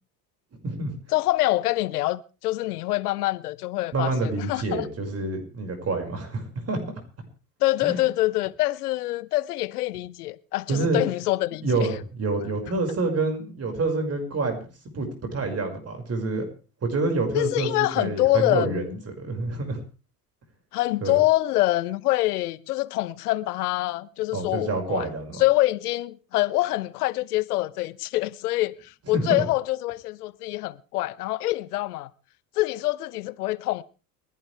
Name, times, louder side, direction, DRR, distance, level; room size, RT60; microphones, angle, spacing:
voice 1, 0.5-0.9 3.9-6.8 7.8-7.9 10.7-11.0 11.6-16.4 16.8-19.8 21.0-21.2 24.3-25.4 29.1-29.4, right 3 dB, 30° right, 5.7 m, -27 dB
voice 2, 1.1-4.9 7.6-11.9 17.3-18.9 20.7-25.1 25.4-32.1 32.6-33.8, left 17 dB, 75° left, 1.0 m, -25 dB
29.5 x 11.0 x 3.4 m
hypercardioid pair, 70°, 46 cm